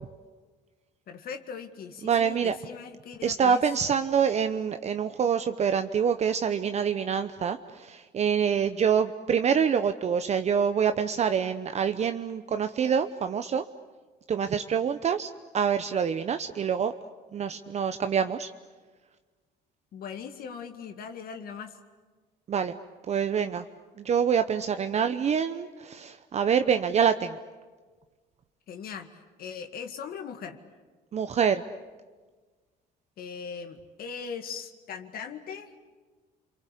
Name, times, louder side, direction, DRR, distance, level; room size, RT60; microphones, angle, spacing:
voice 1, 1.1-3.6 19.9-21.7 28.7-29.1 29.4-30.6 33.2-35.7, left 6 dB, 60° left, 6 dB, 2.1 m, -39 dB
voice 2, 2.0-2.5 3.2-13.6 14.3-16.9 17.3-18.5 22.5-22.7 23.1-23.6 24.0-27.4 31.1-31.6, right 7 dB, 40° right, 9 dB, 0.9 m, -26 dB
30.0 x 23.5 x 8.4 m, 1.4 s
cardioid pair, 110°, 17 cm